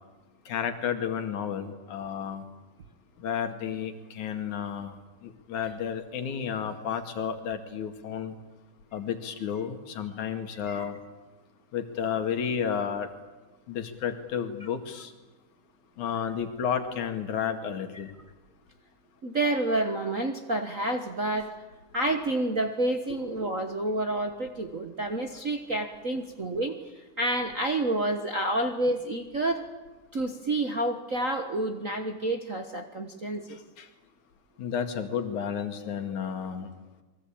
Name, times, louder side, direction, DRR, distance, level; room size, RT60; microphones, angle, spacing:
voice 1, 0.5-2.4 3.2-5.0 5.2-8.4 8.9-11.0 11.7-13.1 13.7-15.1 16.0-18.1 33.5-33.9 34.6-36.7, left 7 dB, 70° left, 6 dB, 3.5 m, -32 dB
voice 2, 19.2-21.5 21.9-29.6 30.1-33.6, right 2 dB, 55° right, 4 dB, 0.8 m, -29 dB
29.0 x 22.5 x 8.8 m, 1.2 s
omnidirectional pair, 3.6 m